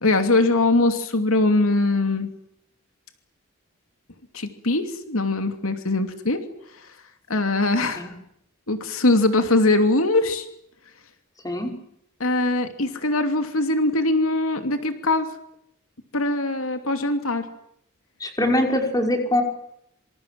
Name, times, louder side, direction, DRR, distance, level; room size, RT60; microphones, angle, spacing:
voice 1, 0.0-2.3 4.3-6.4 7.3-8.1 8.7-10.5 12.2-15.3 16.1-17.5, left 2 dB, 80° left, 7 dB, 2.8 m, -21 dB
voice 2, 18.2-19.4, left 1 dB, 20° left, 3 dB, 5.6 m, -22 dB
26.5 x 26.0 x 7.7 m, 0.77 s
head